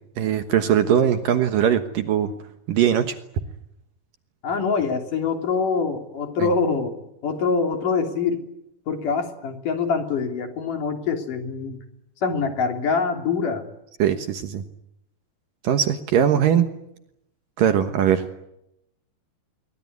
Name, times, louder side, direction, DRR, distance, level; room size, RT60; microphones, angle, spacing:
voice 1, 0.2-2.3 2.7-3.2 14.0-14.6 15.6-16.7 17.6-18.4, right 9 dB, 65° right, 9 dB, 2.6 m, -20 dB
voice 2, 4.4-7.0 7.2-8.4 8.9-11.8 12.2-13.6, left 5 dB, 55° left, 5 dB, 4.5 m, -24 dB
26.0 x 23.5 x 9.7 m, 0.83 s
omnidirectional pair, 4.8 m